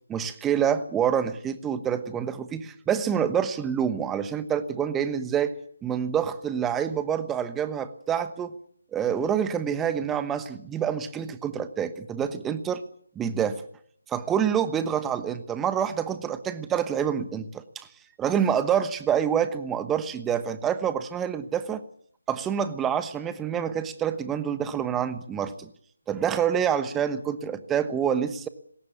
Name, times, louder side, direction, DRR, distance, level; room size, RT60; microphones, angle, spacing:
voice 1, 0.1-5.5 5.8-8.5 8.9-12.8 13.1-13.6 14.1-17.9 18.2-21.8 22.3-25.7 26.1-28.5, right 8 dB, 10° right, 12 dB, 1.1 m, -27 dB
20.0 x 17.5 x 8.3 m, 0.63 s
figure-of-eight pair, 160°, 0 cm